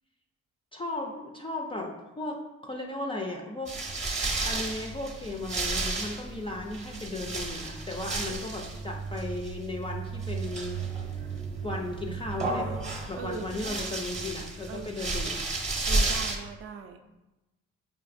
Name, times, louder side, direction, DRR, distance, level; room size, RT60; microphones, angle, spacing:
voice 1, 0.7-3.7 4.4-10.8 11.2-11.3 11.6-12.8 13.1-15.4, left 2 dB, 20° left, 0 dB, 0.3 m, -36 dB
sound 1, 3.7-16.4, right 3 dB, 25° right, 0.7 m, -32 dB
voice 2, 13.2-13.9 14.7-15.1 15.9-17.0, right 5 dB, 50° right, 6 dB, 0.4 m, -40 dB
4.8 x 2.6 x 2.5 m, 1.0 s
cardioid pair, 90°, 30 cm